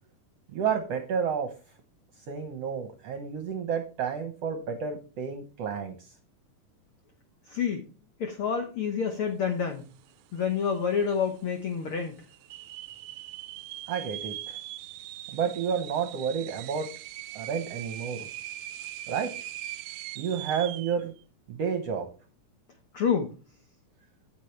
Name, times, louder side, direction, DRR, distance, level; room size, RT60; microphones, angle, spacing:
voice 1, 0.5-1.5 2.3-6.1 13.9-14.6 15.3-16.9 17.3-18.3 19.1-19.3 20.2-21.1 21.5-22.1, right 7 dB, 70° right, 5 dB, 1.6 m, -30 dB
voice 2, 7.5-7.9 8.2-9.8 10.3-12.2 22.9-23.3, left 6 dB, 75° left, 4 dB, 1.2 m, -28 dB
sound 1, 10.1-10.2 10.4-11.0 11.5-11.6 12.3-21.0, right 13 dB, 85° right, 1.7 m, -41 dB
9.0 x 8.4 x 3.2 m, 0.33 s
omnidirectional pair, 3.9 m